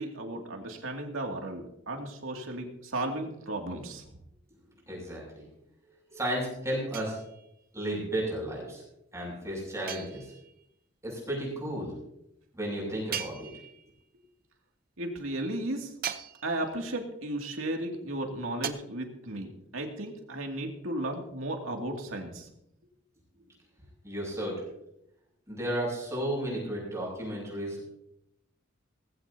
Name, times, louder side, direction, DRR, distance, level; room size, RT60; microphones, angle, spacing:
voice 1, 0.0-4.0 15.0-15.9 16.4-22.5, right 1 dB, 85° right, 2 dB, 2.4 m, -35 dB
voice 2, 4.9-5.4 6.1-7.2 7.7-8.8 9.1-10.3 11.0-11.9 12.5-13.5 24.0-24.6 25.5-27.9, right 1 dB, 15° right, -3 dB, 6.7 m, -33 dB
sound 1, 6.9-7.7 9.9-10.7 13.1-14.0 16.0-16.8 18.6-18.7, right 9 dB, 45° right, 0.7 m, -39 dB
18.5 x 15.0 x 2.8 m, 0.80 s
head